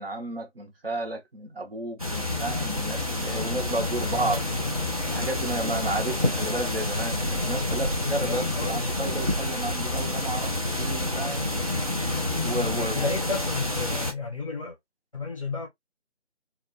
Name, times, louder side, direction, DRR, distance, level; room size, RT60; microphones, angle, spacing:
voice 1, 0.0-4.4 5.0-11.5 12.4-13.1, right 2 dB, 55° right, 0.8 m, -32 dB
sound 1, 2.0-14.1, left 1 dB, 35° right, 0.4 m, -28 dB
voice 2, 4.0-4.8 6.0-6.3 8.2-9.0 12.5-14.8 15.1-15.7, left 3 dB, 30° left, 0.7 m, -33 dB
2.3 x 2.1 x 2.5 m
figure-of-eight pair, 160°, 35 cm